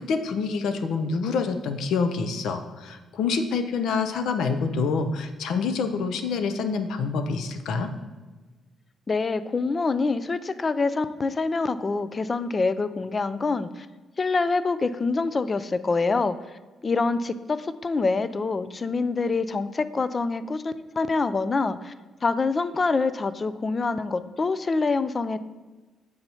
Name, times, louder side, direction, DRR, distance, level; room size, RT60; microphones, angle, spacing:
voice 1, 0.0-7.9, left 4 dB, 75° left, 8 dB, 0.6 m, -27 dB
voice 2, 9.1-13.9 14.2-16.4 16.8-21.9 22.2-25.4, left 3 dB, 30° left, 13 dB, 0.3 m, -25 dB
7.7 x 2.9 x 5.5 m, 1.3 s
cardioid pair, 90°, 0 cm